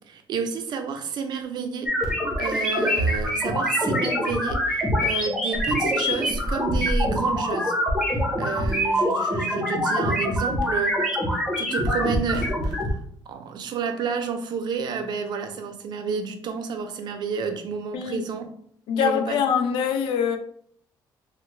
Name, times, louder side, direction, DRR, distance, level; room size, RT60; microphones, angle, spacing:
voice 1, 0.1-7.7 8.1-11.0 11.3-13.0 13.3-18.5 19.0-19.4, right 6 dB, 55° right, 0.4 m, -30 dB
sound 1, 1.9-12.9, equal, 5° right, 0.9 m, -24 dB
voice 2, 17.9-18.2 18.9-20.4, left 7 dB, 85° left, 0.4 m, -24 dB
3.1 x 2.1 x 3.1 m
cardioid pair, 130°, 9 cm